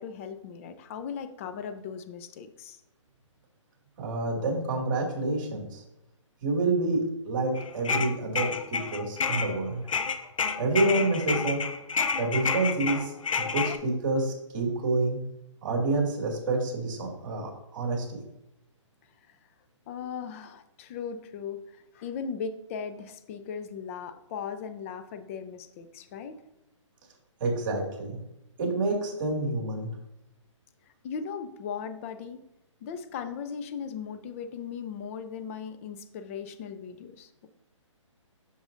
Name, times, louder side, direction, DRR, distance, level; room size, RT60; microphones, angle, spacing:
voice 1, 0.0-2.8 19.3-19.4 19.9-26.4 31.0-32.4 32.8-37.5, left 6 dB, 25° left, 9 dB, 0.5 m, -38 dB
voice 2, 4.0-5.8 6.4-9.8 10.6-11.6 12.2-15.2 15.6-18.0 27.4-28.2 28.6-29.9, right 2 dB, 40° right, -1 dB, 2.2 m, -28 dB
sound 1, 7.6-9.6 9.9-13.8, left 5 dB, 80° left, 0.6 m, -29 dB
7.2 x 6.3 x 2.6 m, 0.85 s
hypercardioid pair, 150°, 16 cm